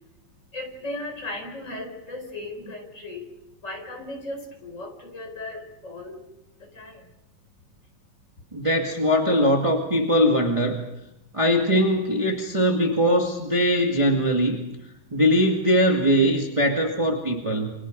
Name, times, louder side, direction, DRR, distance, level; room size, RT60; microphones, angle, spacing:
voice 1, 0.5-3.3 3.6-6.2 6.5-7.1, left 2 dB, 20° left, 2 dB, 4.6 m, -36 dB
voice 2, 8.5-10.8 11.3-14.7 15.1-17.7, equal, 15° right, 1 dB, 1.1 m, -21 dB
29.5 x 25.5 x 5.3 m, 0.88 s
omnidirectional pair, 4.2 m